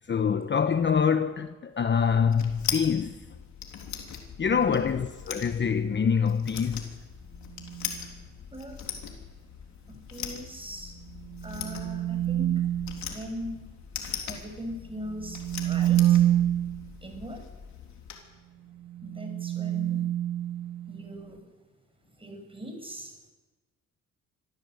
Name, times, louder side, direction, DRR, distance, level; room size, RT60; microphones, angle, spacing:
voice 1, 0.0-3.2 4.4-6.9, left 6 dB, 40° left, 1.0 m, -25 dB
sound 1, 1.9-18.2, left 7 dB, 70° left, 3.8 m, -40 dB
voice 2, 4.4-4.8 8.5-8.8 9.9-10.9 11.4-12.6 13.1-13.7 14.3-16.2 17.0-17.5 19.0-20.1 20.9-21.4 22.2-23.1, equal, 20° right, 7.3 m, -40 dB
sound 2, 7.5-8.0 11.1-13.0 15.1-16.8 18.8-21.1, right 12 dB, 80° right, 2.2 m, -27 dB
25.0 x 15.0 x 8.1 m
cardioid pair, 90°, 30 cm